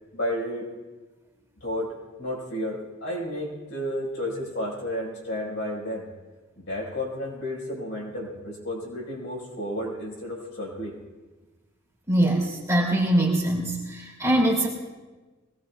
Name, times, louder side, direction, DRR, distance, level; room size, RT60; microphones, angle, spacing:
voice 1, 0.1-0.7 1.6-6.1 6.6-11.0, left 1 dB, 65° left, -4 dB, 5.4 m, -32 dB
voice 2, 12.1-14.7, right 1 dB, 15° right, -3 dB, 2.8 m, -23 dB
22.5 x 19.0 x 2.4 m, 1.2 s
head